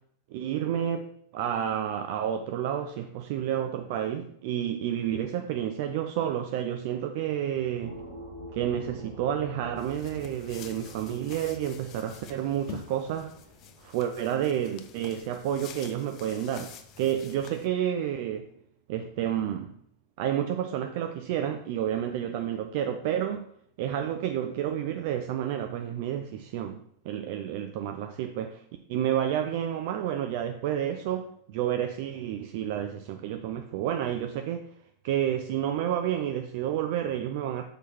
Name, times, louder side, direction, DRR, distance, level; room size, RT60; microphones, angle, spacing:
voice 1, 0.3-8.0 8.5-13.3 13.8-18.4 18.9-19.7 20.2-23.5 23.8-28.6 28.9-34.7 35.0-37.6, right 10 dB, 50° right, 0.5 m, -30 dB
sound 1, 7.8-14.1, equal, 90° right, 2.5 m, -46 dB
sound 2, 9.8-17.7, left 7 dB, 35° left, 0.7 m, -48 dB
6.3 x 5.0 x 4.3 m
figure-of-eight pair, 90°, 0 cm